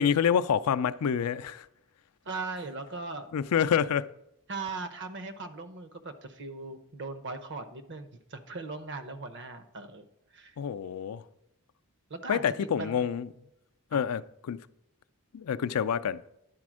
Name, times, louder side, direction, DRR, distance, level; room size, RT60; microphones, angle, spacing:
voice 1, 0.0-1.7 3.3-4.1 10.6-11.2 12.3-13.3 13.9-14.6 15.3-16.2, left 7 dB, 85° left, 0.4 m, -27 dB
voice 2, 2.2-3.3 4.5-10.0 10.3-10.6 12.1-13.1 13.9-14.0, right 3 dB, 55° right, 0.8 m, -39 dB
10.5 x 4.2 x 6.2 m
head